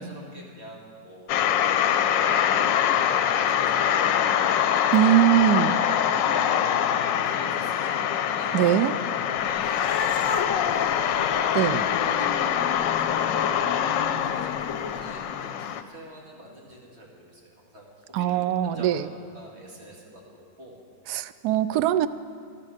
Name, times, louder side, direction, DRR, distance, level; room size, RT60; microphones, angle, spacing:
voice 1, 0.0-4.9 5.3-20.8, equal, 35° right, -2 dB, 2.6 m, -46 dB
sound 1, 1.3-15.8, left 9 dB, 85° left, 1.3 m, -24 dB
voice 2, 4.9-5.7 8.5-8.9 11.5-11.8 18.1-19.0 21.1-22.1, right 12 dB, 70° right, 14 dB, 1.0 m, -21 dB
Cat, 9.5-15.2, left 6 dB, 60° left, 1.0 m, -32 dB
14.0 x 12.0 x 6.5 m, 2.2 s
omnidirectional pair, 2.0 m